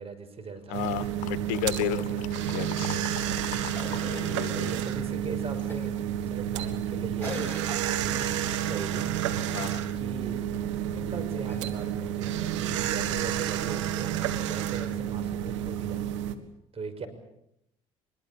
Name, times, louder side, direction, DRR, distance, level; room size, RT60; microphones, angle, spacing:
voice 1, 0.0-1.1 1.8-2.3 2.9-3.4 4.4-5.9 6.3-8.4 8.7-9.1 10.0-10.4 10.9-14.2 14.4-16.3 16.7-17.1, right 4 dB, 40° right, 9 dB, 5.9 m, -40 dB
voice 2, 0.7-2.0 2.5-3.1 4.0-4.7 9.5-9.8, left 16 dB, 75° left, 16 dB, 1.2 m, -33 dB
sound 1, 0.7-16.4, right 10 dB, 85° right, 1.8 m, -30 dB
sound 2, 0.8-4.1 4.3-5.8 6.3-6.4, left 12 dB, 60° left, 1.6 m, -43 dB
Cough, 2.6-3.0 3.7-4.5 5.7-6.0 7.2-8.3 11.4-12.2 13.6-13.7, left 4 dB, 15° left, 4.1 m, -42 dB
24.0 x 22.0 x 8.6 m, 0.79 s
hypercardioid pair, 65°, 15 cm